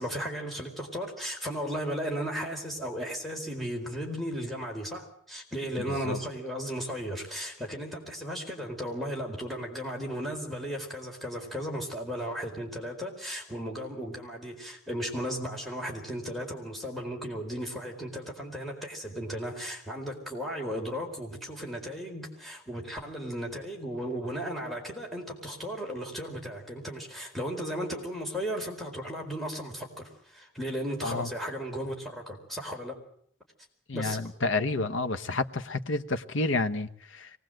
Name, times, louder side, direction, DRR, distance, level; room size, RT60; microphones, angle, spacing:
voice 1, 0.0-33.0 33.9-34.2, equal, ahead, 4.4 m, -35 dB
voice 2, 33.9-37.3, left 3 dB, 75° left, 1.2 m, -30 dB
24.0 x 19.0 x 7.8 m
head